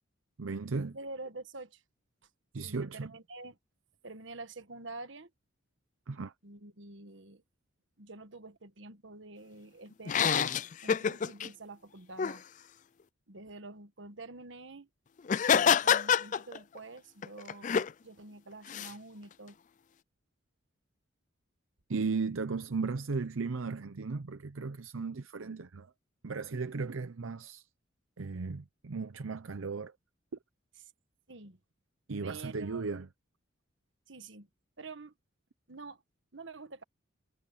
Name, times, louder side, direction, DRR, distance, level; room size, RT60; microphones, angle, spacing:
voice 1, 0.4-1.0 2.5-3.1 6.1-6.3 21.9-25.9 26.2-27.6 28.2-29.9 32.1-33.1, right 4 dB, 80° right, 0.7 m, -36 dB
voice 2, 0.9-1.8 2.6-3.6 4.0-5.3 6.4-7.4 8.0-10.5 10.8-12.4 13.3-14.9 15.5-19.6 31.3-31.6 32.2-32.8 34.1-34.5 34.8-35.1 35.7-36.0 36.3-36.8, right 3 dB, 65° right, 1.4 m, -47 dB
sound 1, 10.1-11.5 12.2-12.4 15.3-16.8 17.2-17.9 18.7-18.9, left 7 dB, 40° left, 0.4 m, -27 dB
head